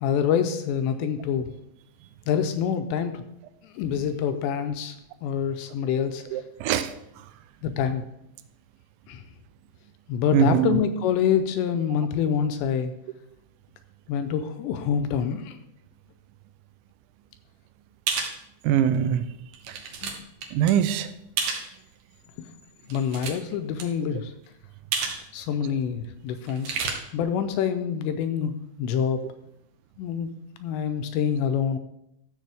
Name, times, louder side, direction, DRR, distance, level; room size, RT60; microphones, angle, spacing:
voice 1, 0.0-1.5 2.3-3.2 3.6-6.4 7.6-8.0 9.1-9.2 10.1-12.9 14.1-15.6 20.0-20.2 22.9-24.3 25.3-29.2 30.0-30.3 30.6-31.8, left 8 dB, 80° left, 8 dB, 2.7 m, -26 dB
voice 2, 6.3-6.9 10.3-10.8 18.6-19.2 19.7-19.8 20.5-21.1, right 9 dB, 85° right, 11 dB, 2.8 m, -22 dB
sound 1, 18.1-18.3 18.9-19.0 19.5-20.1 20.4-20.7 21.4-21.7 22.8-23.5 23.8-23.9 24.9-25.2 25.5-25.6 26.5-26.9, right 5 dB, 65° right, 2.1 m, -29 dB
13.0 x 7.4 x 3.4 m, 0.79 s
omnidirectional pair, 5.3 m